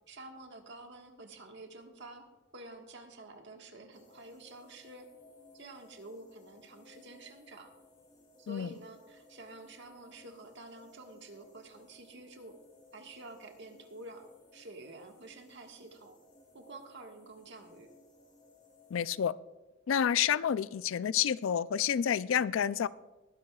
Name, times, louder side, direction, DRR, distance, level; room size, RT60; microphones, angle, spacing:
voice 1, 0.1-2.2 2.5-5.1 5.5-7.7 8.4-12.5 12.9-16.2 16.5-17.9, right 2 dB, 65° right, 3 dB, 1.5 m, -49 dB
sound 1, 3.9-19.2, left 2 dB, 25° left, 3.0 m, -60 dB
voice 2, 18.9-19.3 19.9-22.9, left 8 dB, 75° left, 17 dB, 0.4 m, -29 dB
21.0 x 10.5 x 2.3 m, 1.1 s
head